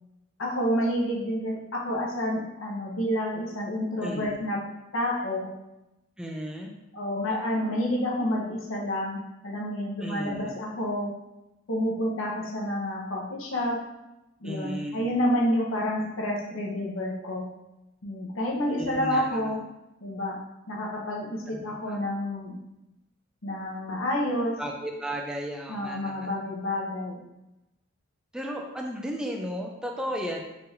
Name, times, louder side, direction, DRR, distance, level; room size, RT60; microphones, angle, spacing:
voice 1, 0.4-4.6 4.9-5.5 6.9-11.1 11.7-13.8 14.4-17.5 18.0-19.6 20.0-20.4 20.7-22.6 23.4-24.6 25.7-27.2, equal, 85° left, -2 dB, 0.9 m, -29 dB
voice 2, 4.0-4.4 6.2-6.7 10.0-10.5 14.4-15.1 18.7-19.3 21.5-22.0 24.6-26.3 28.3-30.4, equal, 5° right, 0 dB, 0.4 m, -34 dB
4.5 x 3.4 x 2.6 m, 0.95 s
head